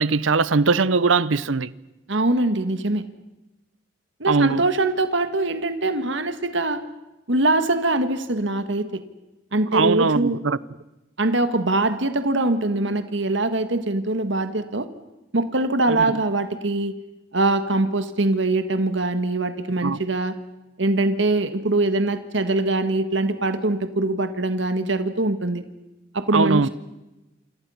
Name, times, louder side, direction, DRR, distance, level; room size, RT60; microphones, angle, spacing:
voice 1, 0.0-1.7 4.3-4.6 9.7-10.6 15.9-16.0 19.8-20.0 26.3-26.7, right 4 dB, 85° right, 0.8 m, -20 dB
voice 2, 2.1-3.0 4.2-6.8 7.3-8.9 9.5-10.4 11.2-14.9 15.3-16.9 17.3-20.3 20.8-25.6 26.1-26.7, right 2 dB, 70° right, 1.6 m, -22 dB
28.0 x 27.0 x 5.7 m
head